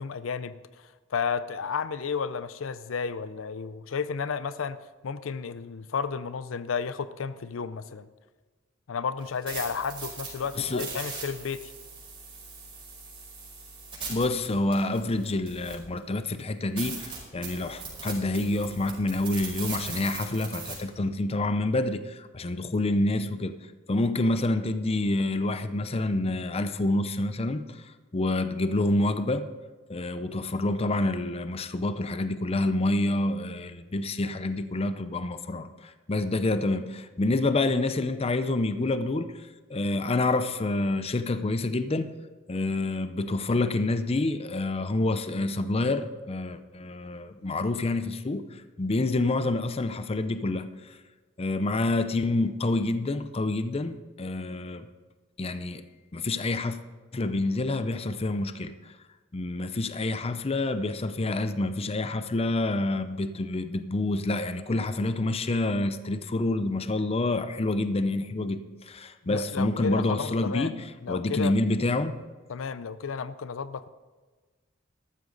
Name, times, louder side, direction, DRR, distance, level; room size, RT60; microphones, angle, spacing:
voice 1, 0.0-4.8 5.0-8.1 8.9-11.7 69.2-71.5 72.5-73.9, left 6 dB, 85° left, 14 dB, 0.5 m, -32 dB
sound 1, 9.2-16.0 16.4-16.5 16.8-20.7, right 4 dB, 30° right, 5.1 m, -40 dB
voice 2, 10.6-10.9 14.1-23.6 23.9-27.8 28.1-29.5 29.9-39.3 39.7-42.1 42.5-51.0 51.4-54.9 55.4-55.8 56.1-56.8 57.1-58.7 59.3-70.7 71.1-72.2, left 2 dB, 30° left, 11 dB, 0.6 m, -28 dB
13.5 x 13.0 x 3.9 m, 1.3 s
head